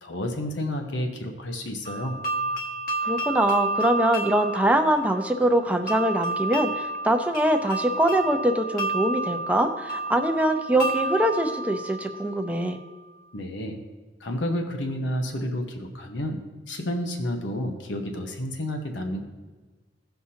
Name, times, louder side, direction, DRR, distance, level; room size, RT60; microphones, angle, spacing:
voice 1, 0.0-2.2 13.3-13.8 14.2-16.4 16.7-19.2, left 1 dB, 85° left, 4 dB, 1.0 m, -30 dB
sound 1, 1.9-12.7, right 2 dB, 50° left, 1.3 m, -30 dB
voice 2, 3.0-12.8, right 1 dB, 10° right, 4 dB, 0.6 m, -23 dB
16.5 x 5.8 x 2.8 m, 1.3 s
head